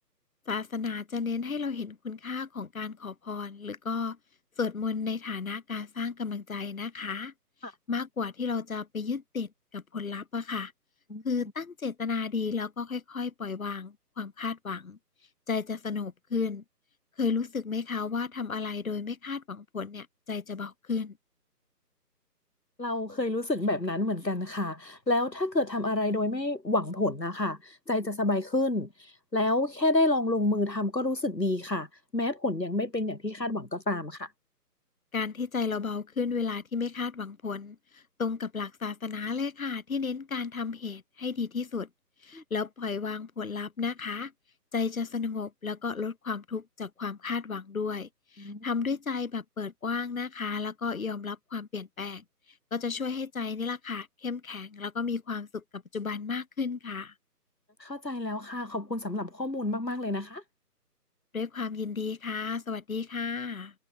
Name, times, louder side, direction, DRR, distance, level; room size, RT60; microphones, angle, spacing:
voice 1, 0.5-4.2 4.6-7.3 7.6-10.7 11.2-15.0 15.5-16.6 17.2-21.2 35.1-41.9 42.2-44.3 44.7-57.1 61.3-63.7, left 5 dB, 55° left, 4.1 m, -33 dB
voice 2, 22.8-31.9 32.1-34.3 42.3-42.4 48.4-48.7 57.8-60.4, left 2 dB, 90° left, 5.1 m, -29 dB
figure-of-eight pair, 150°, 49 cm